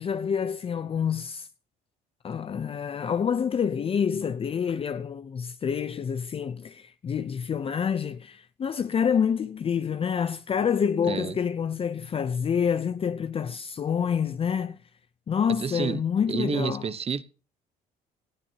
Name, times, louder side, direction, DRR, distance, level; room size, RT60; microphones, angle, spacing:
voice 1, 0.0-1.5 2.2-14.8 15.3-16.9, left 7 dB, 35° left, 0.7 m, -27 dB
voice 2, 11.0-11.4 15.5-16.0 16.3-17.2, right 6 dB, 35° right, 1.0 m, -29 dB
18.5 x 15.0 x 2.9 m
cardioid pair, 110°, 17 cm